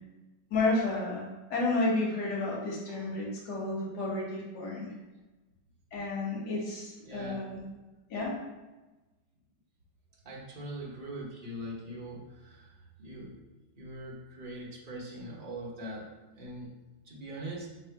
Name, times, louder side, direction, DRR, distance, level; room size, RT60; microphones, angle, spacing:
voice 1, 0.5-1.2 1.5-4.9 5.9-7.6 8.1-8.3, left 2 dB, 55° left, -4 dB, 1.7 m, -31 dB
voice 2, 7.0-7.5 10.2-13.4 13.8-16.1 16.4-16.7 17.0-17.7, right 1 dB, 50° right, -5 dB, 0.6 m, -42 dB
3.6 x 3.2 x 4.6 m, 1.1 s
omnidirectional pair, 2.2 m